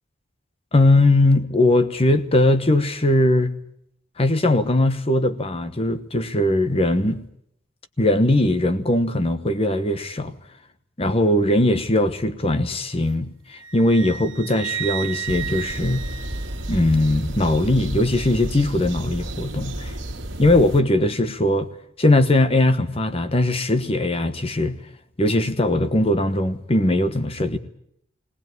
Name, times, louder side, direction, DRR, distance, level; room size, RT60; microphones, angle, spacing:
voice 1, 0.7-3.5 4.2-7.2 8.0-10.3 11.0-16.0 16.7-19.9 20.4-21.7 22.0-24.8 25.2-27.6, left 1 dB, 30° left, 1.1 m, -20 dB
Wind instrument woodwind instrument, 13.5-17.0, right 9 dB, 80° right, 1.3 m, -33 dB
sound 1, 15.3-20.8, right 1 dB, 65° right, 2.2 m, -32 dB
19.5 x 19.0 x 9.4 m
head